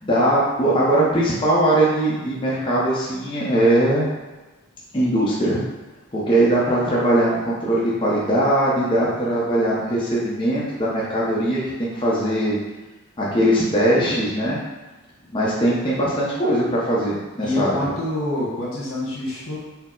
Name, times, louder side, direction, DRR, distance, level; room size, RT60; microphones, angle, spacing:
voice 1, 0.0-4.1 4.9-5.6 6.1-12.6 13.2-14.6 15.3-17.8, right 1 dB, 25° left, -7 dB, 0.6 m, -20 dB
voice 2, 17.4-19.6, left 1 dB, 75° left, -6 dB, 1.3 m, -26 dB
4.4 x 2.0 x 3.7 m, 1.2 s
head